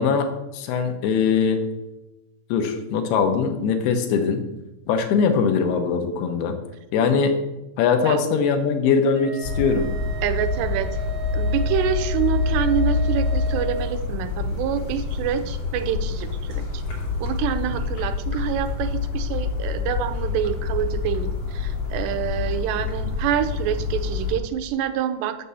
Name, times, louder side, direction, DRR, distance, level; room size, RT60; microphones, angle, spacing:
voice 1, 0.0-1.6 2.5-4.4 4.9-6.6 6.9-7.3 7.8-9.9, left 5 dB, 75° left, 6 dB, 2.9 m, -21 dB
Wind instrument woodwind instrument, 9.1-13.9, right 5 dB, 55° right, 3.6 m, -36 dB
sound 1, 9.4-24.4, left 4 dB, 40° left, 2.8 m, -26 dB
voice 2, 10.2-11.0 11.3-16.8 17.2-25.4, right 9 dB, 90° right, 10 dB, 2.9 m, -27 dB
7.6 x 6.8 x 6.9 m, 0.99 s
omnidirectional pair, 4.7 m